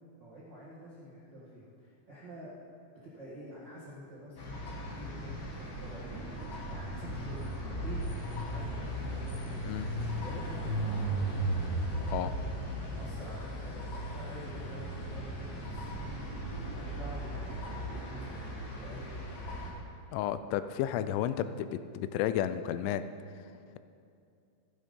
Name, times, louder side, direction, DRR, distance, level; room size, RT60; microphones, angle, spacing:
voice 1, 0.2-2.5 3.0-8.0 8.3-9.2 10.2-11.3 11.9-16.3 16.7-19.7, equal, 75° right, -7 dB, 1.0 m, -48 dB
sound 1, 4.4-19.7, right 1 dB, 55° left, 1.6 m, -37 dB
sound 2, 6.0-18.6, right 2 dB, 30° right, 2.4 m, -47 dB
voice 2, 20.1-23.1, left 11 dB, 90° left, 12 dB, 3.0 m, -32 dB
14.5 x 8.8 x 5.3 m, 2.5 s
omnidirectional pair, 5.3 m